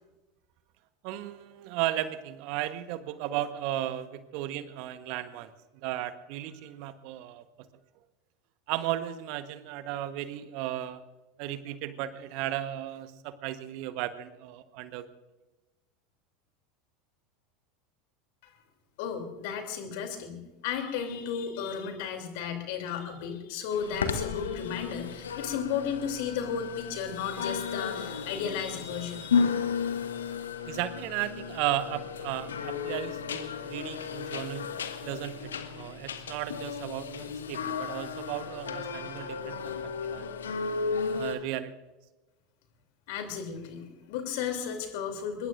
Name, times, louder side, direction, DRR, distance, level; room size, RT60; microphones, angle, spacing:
voice 1, 1.0-7.4 8.7-11.0 11.4-15.0 30.6-34.7 35.0-40.6 41.1-41.7, right 13 dB, 55° right, 11 dB, 1.2 m, -35 dB
voice 2, 19.0-29.4 43.1-45.5, left 7 dB, 60° left, 5 dB, 3.1 m, -34 dB
sound 1, 23.7-41.4, left 6 dB, 75° left, 1.3 m, -34 dB
23.5 x 21.5 x 2.6 m, 1.1 s
figure-of-eight pair, 80°, 0 cm